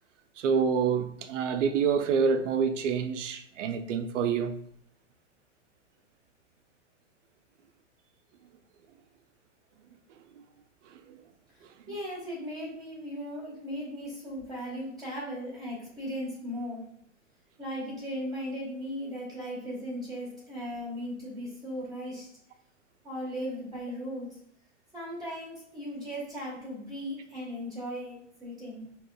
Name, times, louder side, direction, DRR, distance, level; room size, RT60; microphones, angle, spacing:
voice 1, 0.4-4.6 10.4-10.5 10.9-11.2 11.9-12.0, right 6 dB, 75° right, 0.6 m, -27 dB
voice 2, 11.9-16.8 17.6-22.3 23.0-24.4 24.9-28.8, equal, 10° right, 1.2 m, -37 dB
4.8 x 3.1 x 2.2 m
hypercardioid pair, 120°, 37 cm